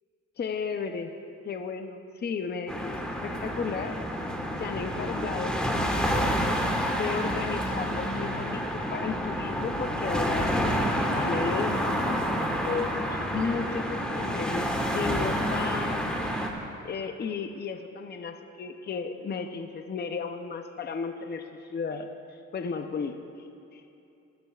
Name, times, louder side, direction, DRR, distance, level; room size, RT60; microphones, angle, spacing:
voice 1, 0.4-1.1 1.4-4.0 4.6-6.6 6.8-10.5 11.0-16.0 16.8-23.8, left 5 dB, 35° left, 6 dB, 0.6 m, -34 dB
sound 1, 2.7-16.5, equal, 5° left, 1.4 m, -29 dB
23.0 x 9.6 x 2.4 m, 2.7 s
cardioid pair, 90°, 30 cm